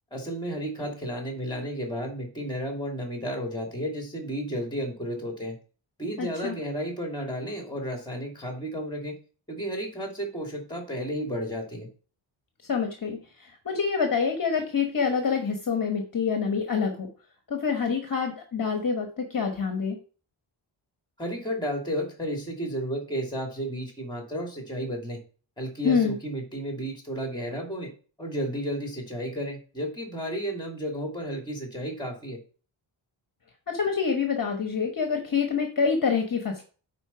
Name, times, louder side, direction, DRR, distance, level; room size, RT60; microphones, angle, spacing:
voice 1, 0.1-5.6 6.0-9.1 9.5-11.9 21.2-25.2 25.6-27.9 28.2-32.4, equal, 10° left, 1 dB, 2.6 m, -32 dB
voice 2, 6.2-6.6 12.7-17.1 17.5-20.0 25.8-26.2 33.7-36.6, left 5 dB, 45° left, 4 dB, 1.2 m, -26 dB
9.8 x 4.3 x 5.8 m, 0.38 s
wide cardioid pair, 175°, 48 cm